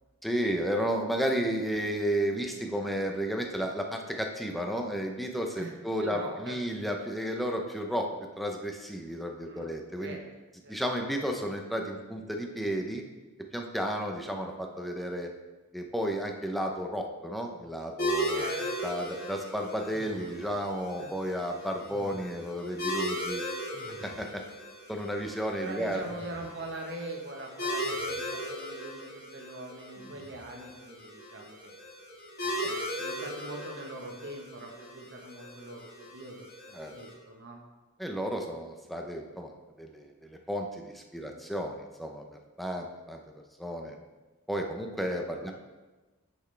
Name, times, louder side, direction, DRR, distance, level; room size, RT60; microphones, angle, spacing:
voice 1, 0.2-8.1 8.4-10.2 10.7-13.0 13.5-15.3 15.7-18.5 18.8-23.4 24.0-24.4 24.9-26.0 32.6-32.7 36.7-36.9 38.0-39.5 39.8-43.2 43.6-44.0 44.5-45.5, equal, ahead, 2 dB, 0.7 m, -32 dB
voice 2, 6.0-6.6 9.4-9.7 10.0-10.2 10.6-10.8 18.3-18.9 21.0-21.1 25.6-31.7 32.4-36.5 36.9-37.6 41.2-41.4 45.4-45.5, right 2 dB, 55° right, 1 dB, 1.2 m, -42 dB
sound 1, 18.0-37.1, equal, 45° left, 2.0 m, -37 dB
sound 2, 19.8-20.8 21.9-22.6 23.7-24.6 25.7-26.7 27.8-28.4 29.9-30.7, equal, 20° right, 1.5 m, -51 dB
8.7 x 6.0 x 3.3 m, 1.2 s
head